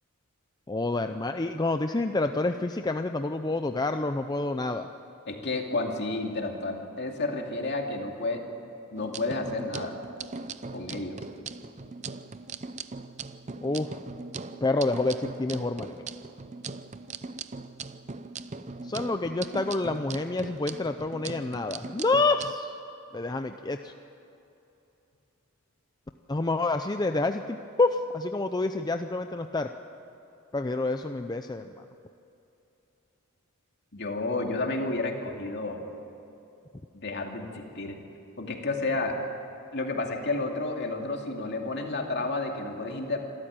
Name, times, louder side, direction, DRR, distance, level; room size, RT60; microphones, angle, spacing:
voice 1, 0.7-4.9 13.6-14.0 14.6-16.0 18.8-22.8 23.1-23.9 26.3-29.7 30.5-31.9, left 2 dB, 20° left, 7 dB, 0.5 m, -28 dB
voice 2, 5.3-8.4 8.9-9.9 10.7-11.2 33.9-35.8 36.9-38.0 38.4-39.2 39.7-43.2, left 2 dB, 50° left, 2 dB, 2.5 m, -31 dB
sound 1, 9.0-22.5, right 4 dB, 35° right, 0.6 m, -40 dB
26.0 x 13.5 x 9.0 m, 2.9 s
head